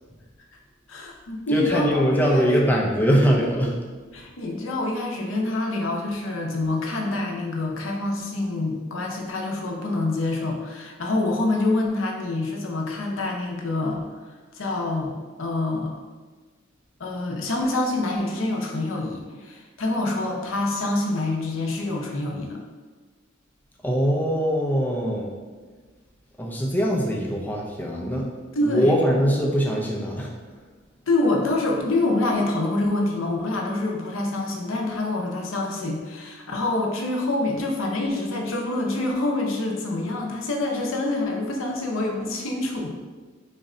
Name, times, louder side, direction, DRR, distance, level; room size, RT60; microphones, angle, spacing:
voice 1, 0.9-2.5 4.1-14.1 14.5-16.0 17.0-22.6 28.5-29.0 31.1-42.9, left 2 dB, 75° left, 1 dB, 0.6 m, -26 dB
voice 2, 1.5-3.8 23.8-25.3 26.4-28.3 28.6-30.3, equal, 10° left, -2 dB, 0.4 m, -22 dB
4.0 x 2.2 x 3.7 m, 1.4 s
head